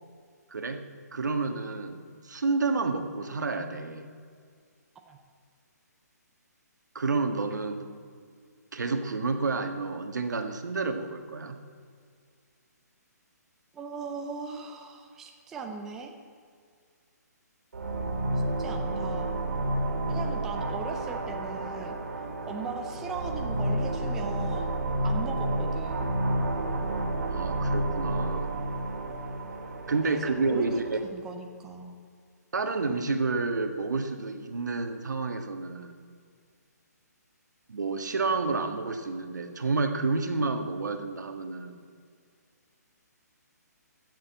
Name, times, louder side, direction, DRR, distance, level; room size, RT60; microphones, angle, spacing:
voice 1, 0.5-0.8 1.1-4.1 6.9-7.9 8.7-11.6 27.3-28.5 29.9-31.0 32.5-36.0 37.7-41.8, right 3 dB, 90° right, 7 dB, 1.6 m, -30 dB
voice 2, 13.7-16.1 18.6-19.4 20.1-22.0 22.5-24.7 25.0-26.1 30.0-30.1 30.5-30.8 31.1-32.0, right 4 dB, 5° right, 3 dB, 0.3 m, -39 dB
sound 1, 17.7-31.1, right 1 dB, 65° right, 2.4 m, -30 dB
15.0 x 6.8 x 8.2 m, 2.1 s
hypercardioid pair, 175°, 9 cm